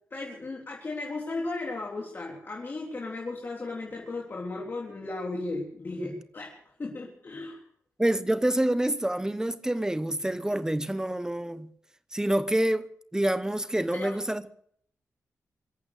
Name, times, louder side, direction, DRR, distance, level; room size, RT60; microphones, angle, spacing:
voice 1, 0.1-6.5 6.8-7.6 13.9-14.2, left 2 dB, 40° left, 3.7 m, -35 dB
voice 2, 8.0-11.7 12.1-14.4, right 1 dB, 10° right, 0.9 m, -27 dB
24.5 x 8.7 x 6.7 m
cardioid pair, 75°, 6 cm